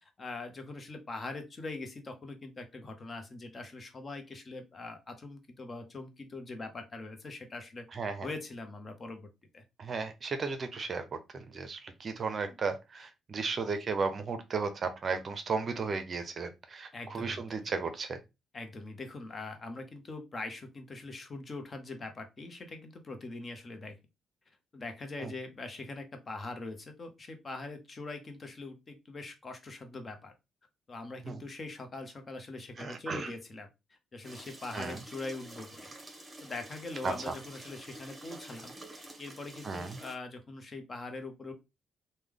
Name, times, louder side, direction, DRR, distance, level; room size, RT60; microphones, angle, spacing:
voice 1, 0.2-7.9 8.2-9.3 9.5-9.6 12.4-12.6 16.9-17.7 18.5-24.0 24.7-30.3 30.9-35.9 36.4-41.5, left 3 dB, 35° left, 0.8 m, -42 dB
voice 2, 7.9-8.3 9.8-18.2 25.2-25.3 31.3-31.4 32.8-33.3 34.7-35.0 37.0-37.3 39.6-40.0, right 4 dB, 45° right, 0.5 m, -35 dB
sound 1, 34.2-40.2, right 1 dB, 25° right, 0.9 m, -49 dB
3.2 x 2.2 x 3.6 m
cardioid pair, 90°, 0 cm